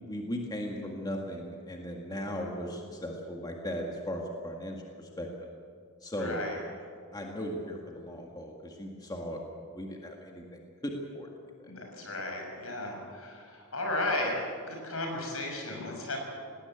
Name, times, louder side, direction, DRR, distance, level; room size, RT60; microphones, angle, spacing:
voice 1, 0.0-5.5 6.0-6.6 7.1-11.3 11.6-11.7, equal, 20° left, 0 dB, 1.9 m, -37 dB
voice 2, 6.2-6.6 11.7-14.4 14.7-16.2, left 2 dB, 75° left, 1 dB, 6.6 m, -34 dB
19.0 x 18.0 x 9.1 m, 2.2 s
head